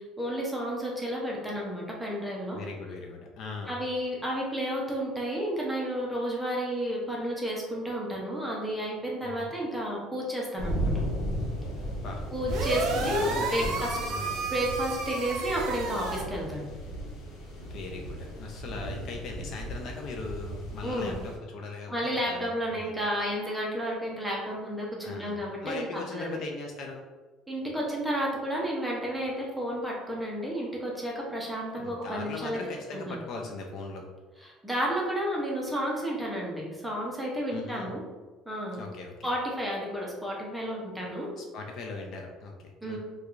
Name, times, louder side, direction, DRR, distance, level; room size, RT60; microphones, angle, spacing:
voice 1, 0.0-2.6 3.7-10.9 12.3-13.9 14.5-16.7 20.8-21.1 21.9-26.4 27.5-32.6 32.9-33.2 34.4-38.0 38.5-38.8 39.2-41.3 42.8-43.0, equal, 5° right, -3 dB, 0.6 m, -31 dB
voice 2, 2.5-3.8 9.2-9.5 11.9-12.2 13.1-13.8 14.1-14.4 17.7-22.0 22.3-22.9 25.0-27.1 31.8-34.0 37.5-37.9 38.7-39.3 41.4-43.0, left 3 dB, 45° left, 2 dB, 0.4 m, -39 dB
sound 1, 10.6-21.4, equal, 80° left, 0.9 m, -35 dB
sound 2, 12.5-16.2, right 4 dB, 55° right, 0.4 m, -32 dB
4.6 x 2.3 x 2.4 m, 1.3 s
cardioid pair, 170°, 0 cm